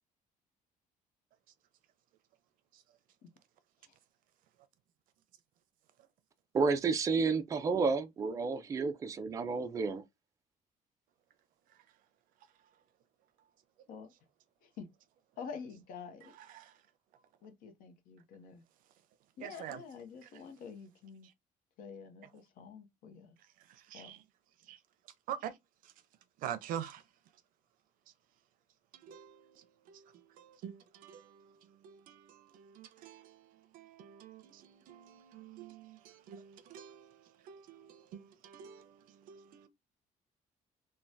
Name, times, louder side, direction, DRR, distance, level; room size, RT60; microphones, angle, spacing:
voice 1, 6.5-10.0, right 4 dB, 20° right, 0.4 m, -31 dB
voice 2, 15.4-16.3 17.4-18.6 19.4-21.3 21.8-23.3 23.9-24.2, left 6 dB, 75° left, 0.7 m, -48 dB
voice 3, 19.4-19.8 23.9-24.2 24.7-24.8 25.3-25.5 26.4-27.0 29.0-29.4 29.9-30.0 30.4-31.2 31.8-33.3 33.7-36.0 36.3-37.1 37.5-39.0 39.3-39.7, right 10 dB, 75° right, 0.5 m, -45 dB
3.2 x 2.2 x 2.6 m
cardioid pair, 165°, 14 cm